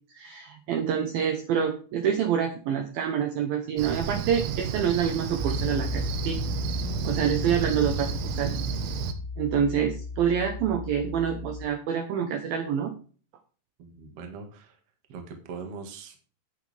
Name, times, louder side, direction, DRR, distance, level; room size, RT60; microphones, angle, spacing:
voice 1, 0.1-6.4 7.0-8.1 8.4-8.5 9.4-12.9, right 8 dB, 70° right, 6 dB, 2.4 m, -27 dB
Cricket, 3.8-9.1, right 8 dB, 85° right, 3.4 m, -32 dB
Piano, 5.4-11.7, left 4 dB, 85° left, 4.1 m, -35 dB
voice 2, 13.8-14.8 15.1-16.3, right 5 dB, 50° right, 5 dB, 2.0 m, -41 dB
11.0 x 8.8 x 3.4 m, 0.39 s
omnidirectional pair, 5.2 m